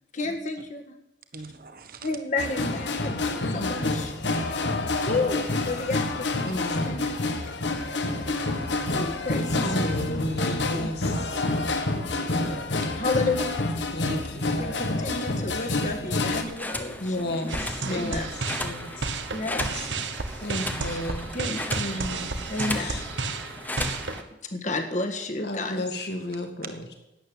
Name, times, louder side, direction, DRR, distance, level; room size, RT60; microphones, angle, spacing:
voice 1, 0.1-1.0 2.0-4.1 5.1-7.4 8.9-10.9 13.0-13.6 14.6-18.3 19.3-19.9 20.7-21.0 21.3-21.7 21.9-22.0 22.5-23.0 24.5-25.9, left 2 dB, 40° left, 4 dB, 1.7 m, -32 dB
voice 2, 1.3-2.1 8.1-9.1 11.8-13.0 14.1-14.8, right 2 dB, 50° right, 8 dB, 1.2 m, -42 dB
sound 1, 2.4-16.4, left 2 dB, 75° left, 1.5 m, -28 dB
voice 3, 3.5-4.3 6.4-7.1 9.5-11.4 13.9-14.5 17.0-18.3 18.6-19.1 20.4-21.3 21.8-22.5 22.8-23.0 25.4-26.8, left 1 dB, 60° left, 3 dB, 2.3 m, -33 dB
sound 2, 16.1-24.2, left 1 dB, 10° left, 1.0 m, -36 dB
sound 3, 17.5-24.2, right 3 dB, 85° right, 1.2 m, -32 dB
12.0 x 8.9 x 8.9 m, 0.91 s
head